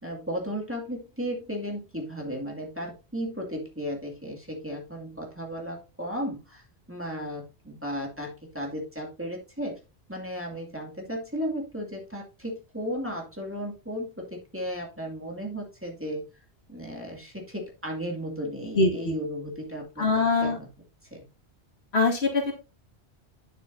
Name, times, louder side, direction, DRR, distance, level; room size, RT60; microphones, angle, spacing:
voice 1, 0.0-9.8 10.1-16.2 16.7-20.1 20.4-20.7 21.1-21.2, equal, 10° right, -1 dB, 2.3 m, -35 dB
voice 2, 18.7-19.1 20.0-20.6 21.9-22.5, left 3 dB, 70° left, 1 dB, 2.2 m, -23 dB
9.1 x 7.8 x 2.6 m, 0.29 s
omnidirectional pair, 1.1 m